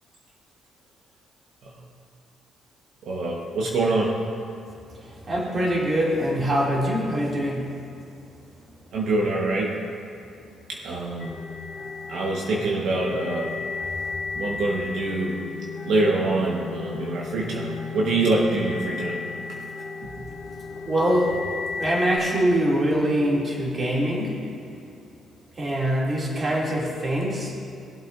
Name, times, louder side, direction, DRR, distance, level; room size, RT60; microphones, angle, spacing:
voice 1, 3.0-4.2 8.9-9.7 10.7-11.3 12.1-13.5 14.3-15.4 15.8-19.2 20.0-20.1, right 2 dB, 70° right, -3 dB, 1.3 m, -25 dB
voice 2, 5.3-7.8 20.8-21.4 21.8-24.4 25.6-27.5, equal, 35° right, -4 dB, 2.7 m, -23 dB
sound 1, 11.2-22.2, left 4 dB, 35° left, 2.8 m, -34 dB
20.0 x 7.8 x 2.7 m, 2.5 s
cardioid pair, 100°, 0 cm